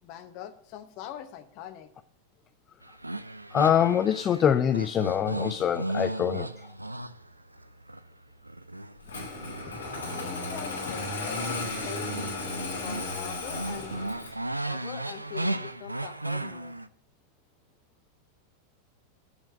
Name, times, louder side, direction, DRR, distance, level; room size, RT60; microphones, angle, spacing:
voice 1, 0.0-1.9 9.0-9.1 9.4-12.4 12.8-14.1 14.6-16.8, left 10 dB, 45° left, 10 dB, 0.8 m, -43 dB
sound 1, 2.8-8.0 8.4-13.2 13.4-16.9, right 1 dB, 85° right, 0.3 m, -36 dB
voice 2, 3.5-6.5, left 9 dB, 25° left, 12 dB, 0.3 m, -24 dB
Engine starting, 9.1-14.4, left 2 dB, 70° left, 2.6 m, -34 dB
6.7 x 5.8 x 6.8 m, 0.67 s
figure-of-eight pair, 90°, 0 cm